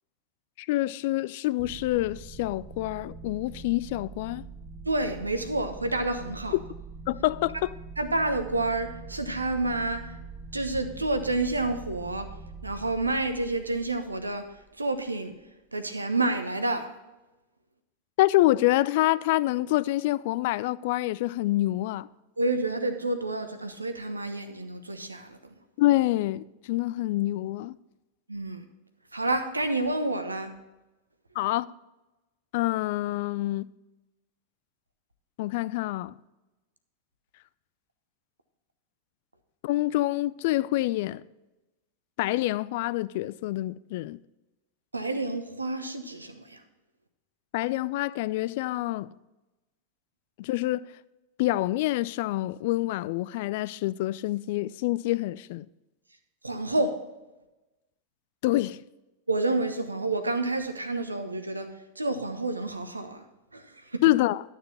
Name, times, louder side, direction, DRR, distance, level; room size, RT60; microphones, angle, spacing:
voice 1, 0.6-4.4 7.1-7.7 18.2-22.1 25.8-27.8 31.4-31.7 32.5-33.7 35.4-36.1 39.6-41.2 42.2-44.2 47.5-49.1 50.4-50.9 51.4-55.7 58.4-58.8 64.0-64.4, left 17 dB, 50° left, 0.3 m, -26 dB
sound 1, 1.6-14.9, right 4 dB, 30° right, 1.3 m, -44 dB
voice 2, 4.8-6.6 8.0-10.2 10.5-12.3 12.6-14.5 14.8-15.3 15.7-16.9 22.4-25.4 28.3-28.6 29.1-30.5 44.9-46.6 56.4-57.0 59.3-61.7 62.0-63.2 63.5-64.0, right 2 dB, 80° right, 1.0 m, -29 dB
12.5 x 6.7 x 4.2 m
figure-of-eight pair, 90°, 0 cm